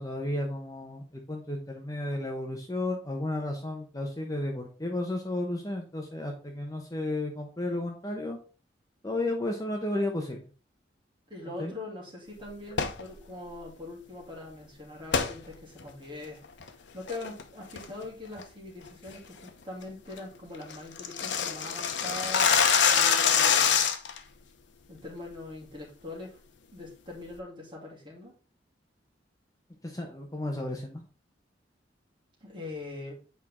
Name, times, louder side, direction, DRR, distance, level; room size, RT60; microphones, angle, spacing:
voice 1, 0.0-8.4 9.0-10.4 11.6-11.7 29.8-31.0, left 1 dB, 20° left, 2 dB, 0.9 m, -33 dB
voice 2, 11.3-16.7 16.9-22.5 22.9-23.8 24.9-26.4 26.7-28.3 32.4-33.2, left 2 dB, 25° right, -3 dB, 2.7 m, -42 dB
sound 1, 12.7-13.0 15.1-15.3 15.8-15.9 16.4-16.7 17.1-17.4 17.8-18.0 18.4-18.5 18.9-19.1 19.5-19.6 19.9-20.0 20.2-20.3 20.5-24.2, left 7 dB, 80° left, 0.8 m, -24 dB
8.4 x 4.6 x 3.6 m, 0.36 s
head